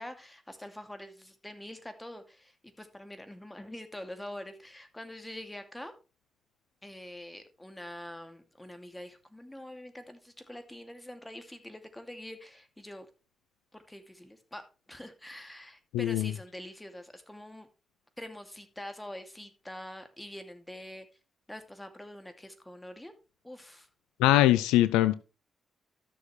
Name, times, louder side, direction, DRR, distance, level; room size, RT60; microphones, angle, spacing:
voice 1, 0.0-5.9 6.8-13.1 13.7-17.7 18.2-21.1 21.5-23.1 23.4-23.9, left 1 dB, 10° left, 2.5 m, -45 dB
voice 2, 15.9-16.3 24.2-25.1, left 15 dB, 80° left, 0.4 m, -22 dB
13.5 x 6.6 x 3.3 m
hypercardioid pair, 40°, 0 cm